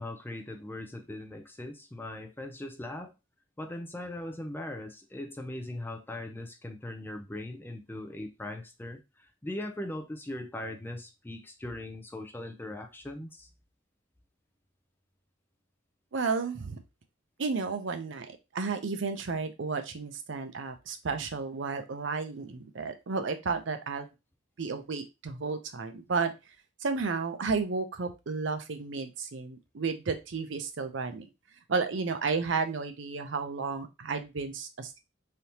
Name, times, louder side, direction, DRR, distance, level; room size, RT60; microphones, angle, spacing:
voice 1, 0.0-3.1 3.6-13.5, left 1 dB, 10° left, 5 dB, 0.4 m, -40 dB
voice 2, 16.1-16.8 17.4-24.1 24.6-26.3 26.8-31.3 31.7-35.0, right 4 dB, 70° right, 8 dB, 0.5 m, -32 dB
3.4 x 2.8 x 2.8 m, 0.25 s
head